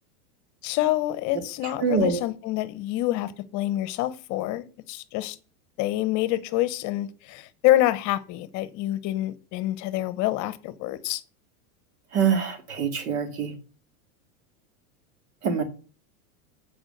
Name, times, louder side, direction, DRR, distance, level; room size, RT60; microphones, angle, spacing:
voice 1, 0.6-5.4 5.8-11.2, left 15 dB, 40° left, 0.8 m, -27 dB
voice 2, 1.8-2.2 12.1-13.5 15.4-15.6, right 6 dB, 85° right, 2.3 m, -24 dB
8.6 x 4.8 x 6.6 m
supercardioid pair, 130°, 45 cm